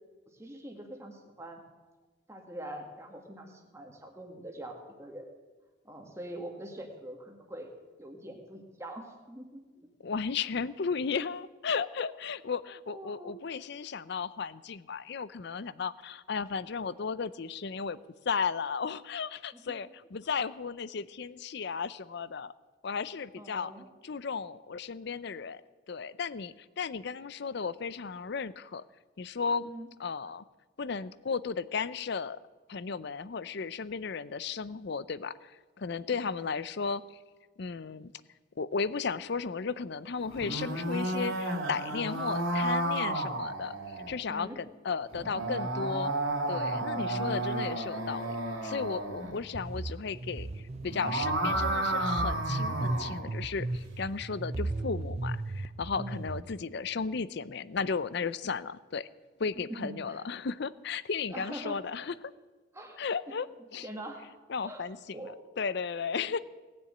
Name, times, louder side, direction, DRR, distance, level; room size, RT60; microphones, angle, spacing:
voice 1, 0.3-1.6 2.3-5.3 5.8-7.7 8.0-9.9 12.9-13.5 19.5-19.6 23.4-23.9 29.6-29.9 36.1-36.4 44.3-44.6 46.9-47.3 49.2-49.4 55.9-56.3 59.6-60.2 61.3-61.8 62.7-63.0 63.8-64.2 64.6-64.8 65.1-65.4, right 1 dB, 15° right, 2 dB, 1.8 m, -44 dB
voice 2, 10.0-18.0 18.3-22.5 22.8-23.7 24.0-25.6 25.9-28.8 29.2-29.7 30.0-30.4 30.8-32.4 32.7-37.0 37.6-38.1 38.6-46.1 46.5-48.4 48.6-59.1 59.4-62.3 63.0-63.5 63.7-63.9 64.5-66.4, left 5 dB, 55° left, 17 dB, 0.5 m, -35 dB
sound 1, 40.2-44.1 45.1-49.3 50.7-53.2, right 1 dB, 75° right, 2.9 m, -32 dB
sound 2, 49.5-56.4, right 2 dB, 30° right, 0.5 m, -36 dB
18.5 x 7.0 x 8.9 m, 1.3 s
head